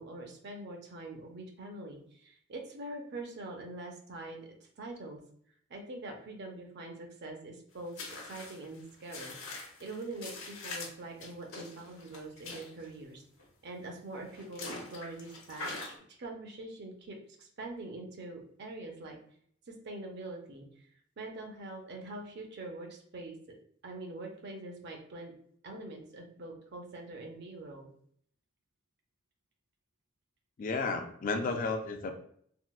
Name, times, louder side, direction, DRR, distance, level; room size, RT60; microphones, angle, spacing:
voice 1, 0.0-5.2 5.7-13.2 13.6-15.9 16.2-19.2 19.7-20.9 21.2-23.6 23.8-25.3 25.6-27.9, right 2 dB, 50° right, 2 dB, 0.6 m, -44 dB
sound 1, 8.0-12.9 13.4-13.5 14.2-15.9, left 3 dB, 70° left, 0.8 m, -43 dB
voice 2, 30.6-32.2, left 3 dB, 40° left, 5 dB, 0.3 m, -33 dB
3.6 x 2.2 x 2.3 m, 0.63 s
head